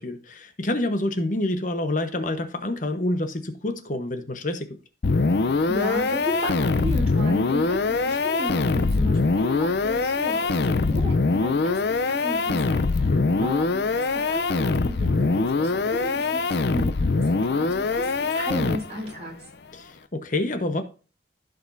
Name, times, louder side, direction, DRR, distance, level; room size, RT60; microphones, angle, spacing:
voice 1, 0.0-4.8 13.1-13.5 19.7-20.8, left 1 dB, 45° left, 1.0 m, -28 dB
sound 1, 5.0-19.1, left 3 dB, 65° left, 0.5 m, -23 dB
voice 2, 5.7-13.1 13.4-19.3, equal, 35° right, 3.9 m, -34 dB
15.5 x 5.2 x 2.6 m
head